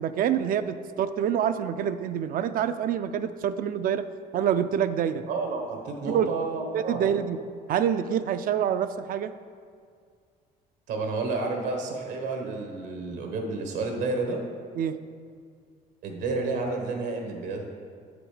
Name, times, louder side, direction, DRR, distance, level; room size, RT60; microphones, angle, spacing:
voice 1, 0.0-4.0 4.3-5.2 6.1-6.3 6.7-7.4 7.7-9.3 14.8-15.0, right 9 dB, 55° right, 10 dB, 0.4 m, -26 dB
voice 2, 5.3-7.0 10.9-14.4 16.0-17.7, right 3 dB, 85° right, 2 dB, 1.2 m, -30 dB
7.8 x 5.0 x 5.0 m, 2.1 s
cardioid pair, 110°, 17 cm